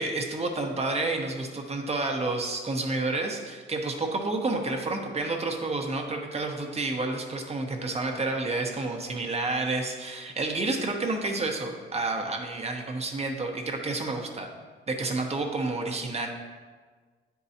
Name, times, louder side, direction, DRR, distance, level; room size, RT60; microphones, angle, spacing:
voice 1, 0.0-14.5 14.9-16.3, right 2 dB, 30° right, 2 dB, 1.0 m, -30 dB
9.7 x 4.7 x 2.8 m, 1.5 s
cardioid pair, 90°, 20 cm